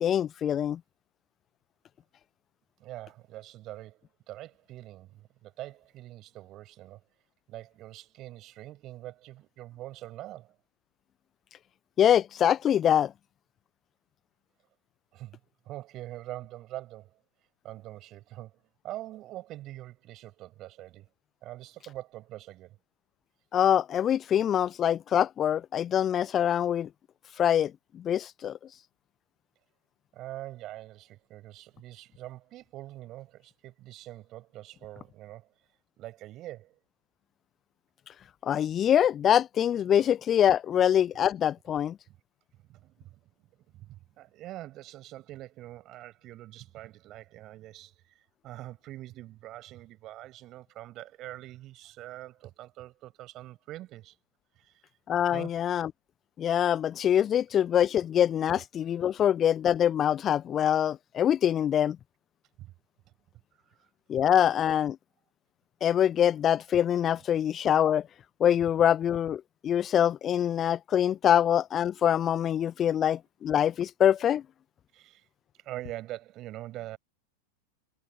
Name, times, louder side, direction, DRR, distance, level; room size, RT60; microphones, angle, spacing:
voice 1, 0.0-0.8 12.0-13.1 23.5-26.9 27.4-28.6 38.4-42.0 55.1-55.9 56.4-62.0 64.1-65.0 65.8-68.1 68.4-74.4, left 10 dB, 25° left, 0.6 m, -24 dB
voice 2, 2.8-7.0 7.5-10.6 15.1-15.4 15.6-17.2 17.6-21.1 21.4-22.8 30.1-35.5 36.0-36.8 42.7-43.2 43.5-54.2 54.5-54.9 55.3-55.6 62.6-62.7 63.7-63.9 74.9-75.3 75.5-77.0, right 15 dB, 35° right, 5.9 m, -44 dB
figure-of-eight pair, 90°, 0 cm